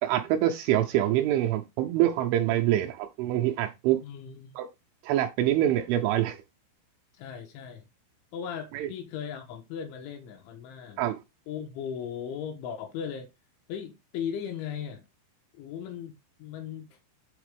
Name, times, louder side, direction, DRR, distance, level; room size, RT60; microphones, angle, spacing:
voice 1, 0.0-4.0 4.6-4.7 5.0-6.4 8.7-8.9 11.0-11.2, right 12 dB, 80° right, 2.9 m, -25 dB
voice 2, 4.0-4.5 7.1-7.9 8.3-11.0 11.5-13.3 13.7-15.0 15.5-16.1 16.4-16.9, left 8 dB, 75° left, 3.2 m, -37 dB
8.1 x 4.0 x 5.0 m
omnidirectional pair, 5.9 m